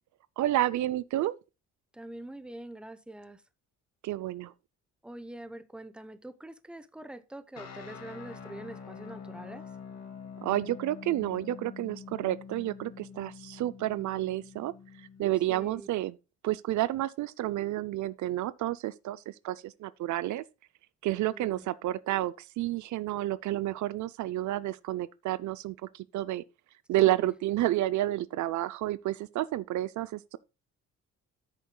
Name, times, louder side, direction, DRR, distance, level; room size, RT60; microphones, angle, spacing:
voice 1, 0.4-1.3 4.0-4.5 10.4-14.7 15.2-16.2 16.4-20.4 21.0-26.4 26.9-30.4, right 14 dB, 70° right, 0.5 m, -30 dB
voice 2, 1.9-3.4 5.0-9.7 15.5-15.9 21.2-21.7 27.0-27.3, right 1 dB, 5° right, 0.8 m, -44 dB
sound 1, 7.6-15.8, left 6 dB, 60° left, 2.1 m, -46 dB
13.5 x 6.5 x 2.2 m
cardioid pair, 90°, 30 cm